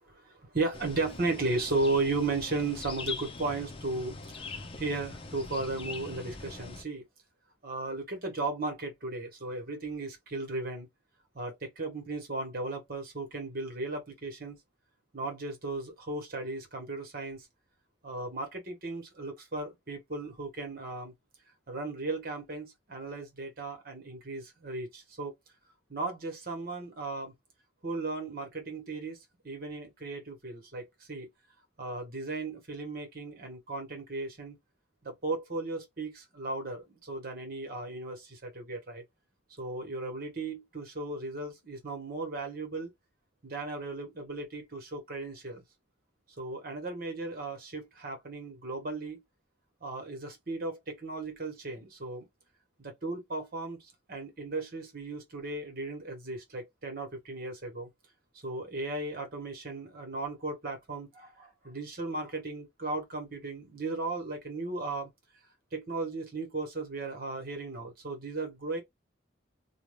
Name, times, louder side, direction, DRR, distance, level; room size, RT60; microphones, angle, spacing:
voice 1, 0.1-7.0 7.6-10.9 11.3-14.6 15.1-17.4 18.0-21.1 21.7-25.3 25.9-27.3 27.8-29.2 29.4-31.3 31.8-34.6 35.0-39.0 39.6-42.9 43.4-45.6 46.4-49.2 49.8-52.3 52.8-53.8 54.1-57.9 58.4-65.1 65.7-68.8, right 3 dB, 55° right, 1.3 m, -36 dB
sound 1, 0.7-6.8, left 4 dB, 30° left, 0.6 m, -42 dB
2.6 x 2.3 x 3.3 m
head